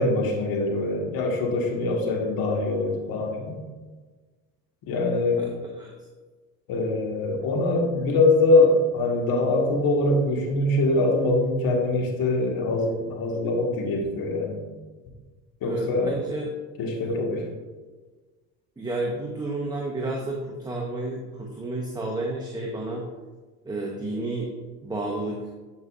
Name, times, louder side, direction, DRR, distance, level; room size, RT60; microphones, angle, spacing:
voice 1, 0.0-3.6 4.8-5.4 6.7-14.6 15.6-16.1 16.8-17.5, left 2 dB, 60° left, 1 dB, 1.8 m, -23 dB
voice 2, 15.6-16.5 18.8-23.0 23.6-24.5 24.8-25.4, right 2 dB, 10° right, -1 dB, 1.0 m, -31 dB
10.5 x 5.3 x 2.5 m, 1.3 s
supercardioid pair, 75°, 39 cm